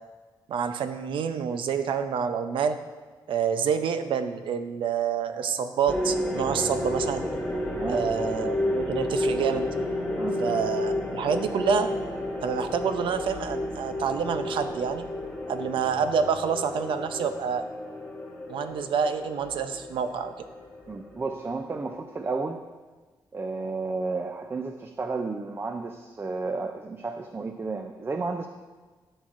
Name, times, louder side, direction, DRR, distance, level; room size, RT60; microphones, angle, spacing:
voice 1, 0.5-2.8 3.3-7.3 7.9-9.7 10.4-11.9 12.4-15.0 15.5-17.6 18.5-20.3, right 7 dB, 80° right, 9 dB, 0.6 m, -27 dB
sound 1, 5.9-22.4, left 1 dB, 15° left, 1.3 m, -31 dB
voice 2, 7.7-8.1 10.2-10.4 20.9-22.6 23.3-28.5, right 3 dB, 30° right, 5 dB, 0.5 m, -32 dB
12.0 x 6.2 x 2.6 m, 1.3 s
cardioid pair, 100°, 9 cm